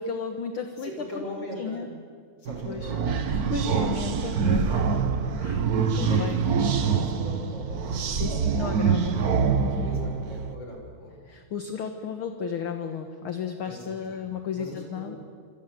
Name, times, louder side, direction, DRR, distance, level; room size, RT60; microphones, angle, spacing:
voice 1, 0.0-1.9 2.7-2.9 3.3-5.6 5.9-6.5 8.1-9.2 9.6-9.9 11.3-15.2, left 6 dB, 50° left, 7 dB, 1.9 m, -34 dB
voice 2, 0.8-1.9 2.4-3.4 6.1-8.9 9.1-9.2 9.8-11.2 13.7-14.2 14.5-15.1, left 1 dB, 35° left, 1 dB, 6.8 m, -40 dB
sound 1, 2.5-10.5, right 6 dB, 75° right, 0.8 m, -25 dB
26.5 x 26.5 x 7.8 m, 2.2 s
omnidirectional pair, 3.5 m